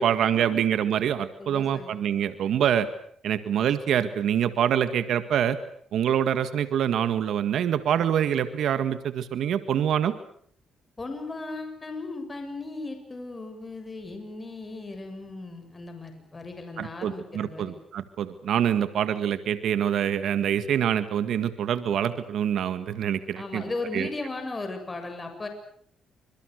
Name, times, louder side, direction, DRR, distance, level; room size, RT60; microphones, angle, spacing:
voice 1, 0.0-2.9 3.2-5.6 5.9-10.1 16.8-23.6 23.9-24.1, right 9 dB, 70° right, 11 dB, 1.8 m, -25 dB
voice 2, 1.4-2.0 11.0-17.7 23.3-25.5, left 3 dB, 25° left, 6 dB, 7.4 m, -36 dB
29.0 x 26.0 x 6.6 m, 0.64 s
cardioid pair, 90°, 0 cm